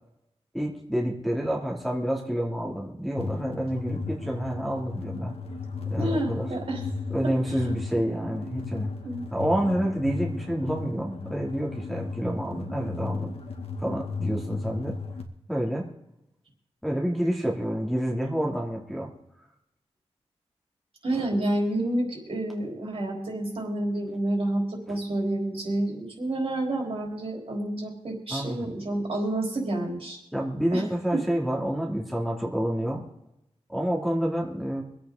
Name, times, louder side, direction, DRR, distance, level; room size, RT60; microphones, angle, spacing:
voice 1, 0.5-5.3 5.9-6.6 7.1-8.9 9.3-13.3 13.8-14.9 15.5-15.9 16.8-19.1 21.1-21.2 24.9-25.0 28.3-28.7 30.3-33.0 33.7-34.8, equal, ahead, -3 dB, 2.7 m, -28 dB
sound 1, 3.2-15.2, left 3 dB, 60° left, 2.0 m, -35 dB
voice 2, 6.0-6.8 7.2-7.7 9.0-9.2 21.0-30.2 30.7-30.8 31.1-31.2, right 1 dB, 55° right, 0 dB, 4.0 m, -29 dB
24.5 x 8.6 x 3.9 m, 0.86 s
wide cardioid pair, 105°, 11 cm